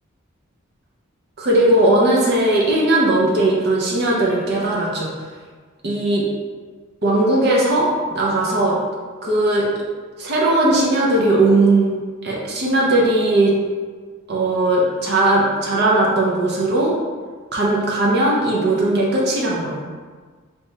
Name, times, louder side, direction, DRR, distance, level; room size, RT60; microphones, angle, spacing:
voice 1, 1.4-5.1 5.8-6.2 7.0-8.8 9.2-9.7 10.2-11.9 12.2-13.5 14.3-17.0 17.5-19.8, right 2 dB, 50° right, -4 dB, 0.6 m, -18 dB
3.3 x 2.9 x 3.2 m, 1.5 s
head